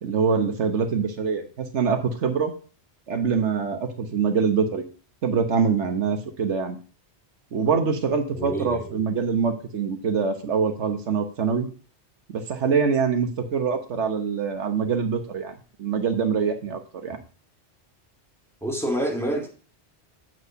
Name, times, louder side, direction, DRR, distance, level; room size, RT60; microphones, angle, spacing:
voice 1, 0.0-2.5 3.1-4.8 5.2-6.8 7.5-11.7 12.3-17.2, right 6 dB, 90° right, 7 dB, 1.4 m, -24 dB
voice 2, 8.3-9.0 18.6-19.5, right 1 dB, ahead, 0 dB, 1.8 m, -27 dB
8.2 x 4.7 x 5.6 m, 0.38 s
omnidirectional pair, 1.2 m